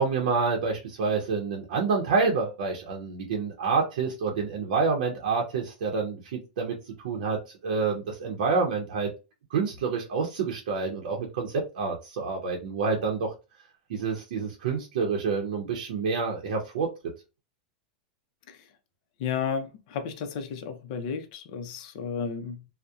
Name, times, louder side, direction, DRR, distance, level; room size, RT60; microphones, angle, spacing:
voice 1, 0.0-9.1 9.5-13.3 13.9-16.9, right 4 dB, 75° right, 0.6 m, -28 dB
voice 2, 19.2-22.7, left 6 dB, 55° left, 0.5 m, -33 dB
2.7 x 2.0 x 2.3 m
supercardioid pair, 150°, 5 cm